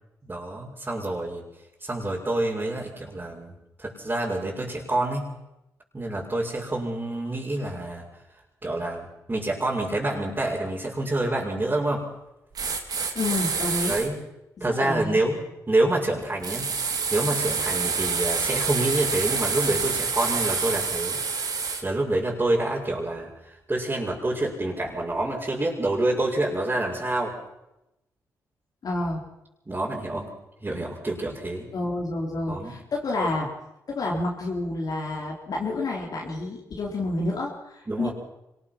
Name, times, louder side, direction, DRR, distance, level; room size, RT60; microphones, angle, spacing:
voice 1, 0.2-1.4 1.8-3.5 3.8-5.3 5.9-8.0 8.6-12.1 13.9-14.2 14.6-16.7 17.1-21.2 21.8-27.3 29.7-30.3 30.6-31.7 32.5-32.7 37.9-38.1, right 2 dB, 25° right, -6 dB, 6.2 m, -27 dB
sound 1, 12.5-14.1 16.4-21.8, right 5 dB, 60° right, 3.6 m, -27 dB
voice 2, 13.1-13.9 14.7-15.2 28.8-29.2 31.7-33.5 33.9-38.1, left 2 dB, 55° left, -2 dB, 4.3 m, -29 dB
25.0 x 20.0 x 6.1 m, 0.90 s
supercardioid pair, 50°, 7 cm